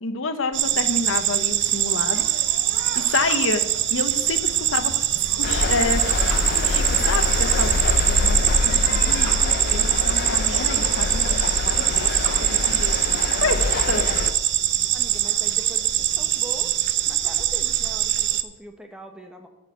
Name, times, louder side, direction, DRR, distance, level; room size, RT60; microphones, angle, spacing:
voice 1, 0.0-2.2 2.9-3.6 3.9-5.0 5.4-6.0 6.5-7.7 8.1-11.2 11.6-12.1 12.7-12.9 13.4-14.1, left 4 dB, 65° left, 9 dB, 0.9 m, -28 dB
sound 1, 0.5-18.4, right 13 dB, 55° right, 0.5 m, -23 dB
Drill, 3.1-3.5 6.0-6.5 9.1-9.4 12.0-12.4, right 2 dB, 80° right, 2.4 m, -37 dB
sound 2, 5.4-14.3, left 3 dB, 45° left, 0.5 m, -25 dB
voice 2, 14.9-16.7 17.1-19.5, right 1 dB, 5° right, 4 dB, 1.0 m, -42 dB
8.7 x 6.0 x 8.0 m, 1.1 s
head